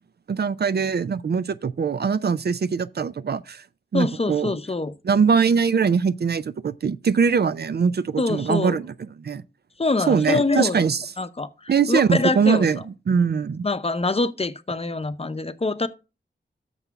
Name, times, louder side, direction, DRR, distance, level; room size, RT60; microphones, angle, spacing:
voice 1, 0.3-3.6 3.9-4.6 5.0-8.9 9.2-9.4 10.1-11.0 11.7-12.8 13.1-13.7, right 6 dB, 60° right, 0.5 m, -22 dB
voice 2, 3.9-4.9 8.2-8.8 9.8-10.9 11.2-12.8 13.6-15.9, left 3 dB, 30° left, 0.7 m, -25 dB
6.8 x 6.0 x 5.7 m
wide cardioid pair, 75°, 19 cm